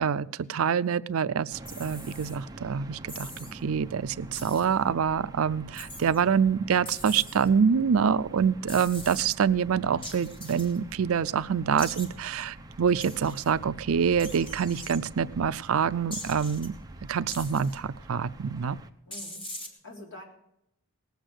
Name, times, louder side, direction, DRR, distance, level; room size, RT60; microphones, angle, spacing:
voice 1, 0.0-16.7 17.1-18.8, right 7 dB, 70° right, 17 dB, 0.4 m, -26 dB
sound 1, 1.5-18.9, right 1 dB, 15° right, 0.8 m, -46 dB
sound 2, 1.7-2.4 3.1-3.5 4.3-4.7 5.7-6.2 6.9-7.5 8.7-9.3 10.0-10.8 11.8-12.1 13.0-13.5 14.2-15.0 16.1-16.7 17.3-17.8 19.1-19.7, left 1 dB, 25° left, 2.1 m, -42 dB
voice 2, 19.0-20.2, left 1 dB, 60° left, 0 dB, 3.9 m, -46 dB
19.0 x 8.1 x 6.5 m, 0.79 s
head